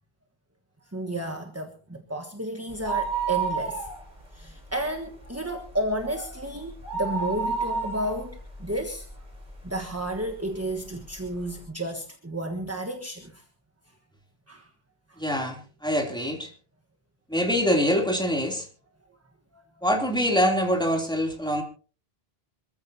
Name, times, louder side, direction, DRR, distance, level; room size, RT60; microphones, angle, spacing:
voice 1, 0.9-3.9 4.3-9.1 9.6-13.4 14.5-14.7 15.1-15.2 19.5-19.6, right 1 dB, 15° right, 5 dB, 1.4 m, -32 dB
sound 1, 2.7-4.4 4.7-4.8 5.2-9.6 10.2-10.3 11.0-11.1 11.4-11.5, right 5 dB, 45° right, 4.2 m, -30 dB
voice 2, 15.2-16.5 17.3-18.7 19.8-21.6, equal, 5° left, 1 dB, 3.1 m, -24 dB
26.0 x 14.5 x 2.8 m, 0.39 s
omnidirectional pair, 1.1 m